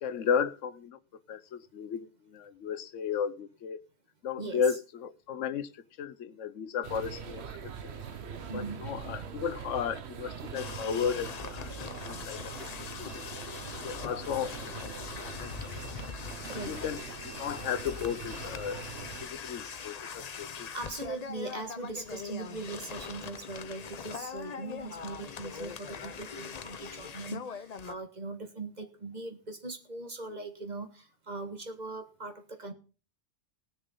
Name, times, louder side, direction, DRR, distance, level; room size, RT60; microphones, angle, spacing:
voice 1, 0.0-1.0 1.3-3.8 4.2-8.0 8.5-13.1 13.8-15.7 16.6-17.0 17.4-18.9 19.2-20.7, left 7 dB, 90° left, 14 dB, 1.1 m, -34 dB
sound 1, 6.8-19.3, right 6 dB, 65° right, 1.2 m, -43 dB
voice 2, 8.5-8.9 9.2-9.4 16.5-16.8 20.7-32.7, right 3 dB, 35° right, 7 dB, 1.7 m, -40 dB
sound 2, 10.5-27.9, left 6 dB, 40° left, 0.7 m, -42 dB
18.0 x 6.6 x 5.4 m, 0.36 s
omnidirectional pair, 1.2 m